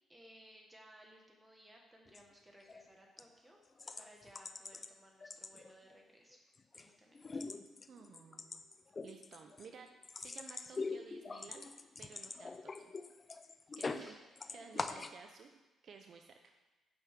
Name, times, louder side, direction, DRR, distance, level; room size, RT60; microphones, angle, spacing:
voice 1, 0.1-3.6 4.0-6.4 6.7-7.4 13.8-14.2, equal, 10° right, 0 dB, 1.6 m, -60 dB
sound 1, 2.1-2.2 2.6-2.9 3.2-3.3 3.8-4.9 5.2-6.0 6.3-6.9 7.1-14.1 14.4-15.2, left 4 dB, 30° left, 0.4 m, -44 dB
voice 2, 7.9-8.6 9.0-9.9 10.2-11.7 12.0-12.9 13.4-14.2 14.5-16.4, right 6 dB, 55° right, 5 dB, 0.5 m, -55 dB
8.9 x 5.7 x 3.7 m, 1.1 s
cardioid pair, 90°, 0 cm